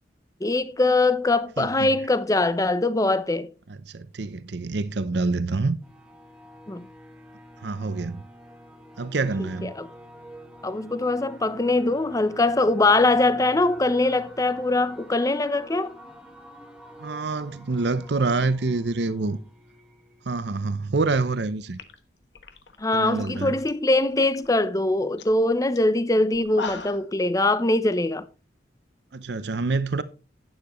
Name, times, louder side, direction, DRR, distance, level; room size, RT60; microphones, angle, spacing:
voice 1, 0.4-3.5 6.7-6.9 9.4-9.9 10.6-16.0 22.8-28.3, left 2 dB, 20° left, 0.6 m, -22 dB
voice 2, 1.6-1.9 3.7-5.8 7.6-8.2 9.0-9.7 17.0-19.4 20.3-21.8 22.9-23.6 29.1-30.0, right 3 dB, 65° right, 0.6 m, -26 dB
sound 1, 5.8-21.2, equal, 5° right, 1.6 m, -48 dB
sound 2, 21.3-21.4 21.7-23.7 24.0-24.5 24.8-24.9 25.2-25.4 25.8-25.9 26.3-27.1, left 5 dB, 75° left, 1.2 m, -38 dB
11.5 x 9.2 x 3.1 m
head